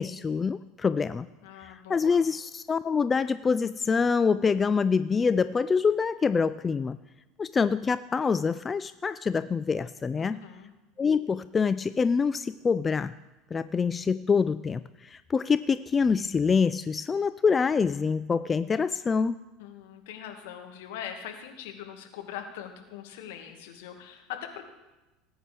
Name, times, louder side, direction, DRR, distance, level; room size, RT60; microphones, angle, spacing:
voice 1, 0.0-1.3 1.6-7.0 7.4-10.4 11.0-13.1 13.5-19.4, left 5 dB, 25° left, 14 dB, 0.4 m, -25 dB
voice 2, 1.4-2.2 10.2-10.7 19.6-24.7, left 9 dB, 70° left, 4 dB, 1.7 m, -42 dB
19.0 x 9.0 x 3.4 m, 1.1 s
hypercardioid pair, 75°, 0 cm